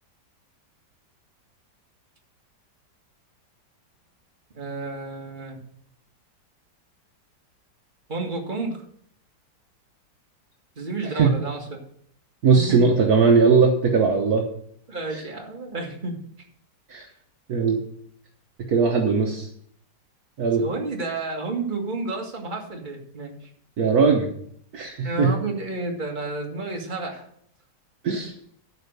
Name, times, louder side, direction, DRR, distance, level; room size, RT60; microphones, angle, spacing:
voice 1, 4.5-5.6 8.1-8.8 10.8-11.8 12.6-12.8 14.9-16.2 20.6-23.5 25.0-27.3, right 3 dB, 25° right, 1 dB, 1.9 m, -31 dB
voice 2, 12.4-14.4 16.9-17.1 17.5-17.8 18.7-19.5 20.4-20.7 23.8-24.3 24.7-25.3 28.0-28.3, right 5 dB, 60° right, 1 dB, 1.5 m, -19 dB
13.0 x 4.9 x 6.7 m, 0.66 s
omnidirectional pair, 1.9 m